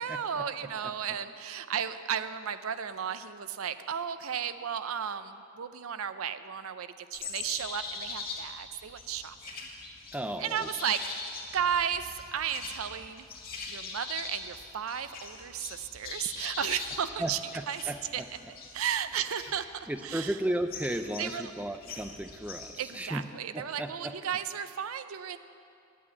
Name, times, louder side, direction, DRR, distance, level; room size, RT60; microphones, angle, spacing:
voice 1, 0.0-9.7 10.4-11.0 11.5-13.3 13.7-17.4 17.7-17.8 18.1-18.2 18.7-20.4 21.2-21.5 22.8-25.4, right 8 dB, 80° right, 12 dB, 0.5 m, -34 dB
sound 1, 7.1-22.7, left 4 dB, 45° left, 2.0 m, -42 dB
voice 2, 10.1-10.7 17.2-18.3 19.9-23.3 23.5-24.2, right 1 dB, 5° right, 8 dB, 0.4 m, -34 dB
10.5 x 8.4 x 9.7 m, 2.6 s
head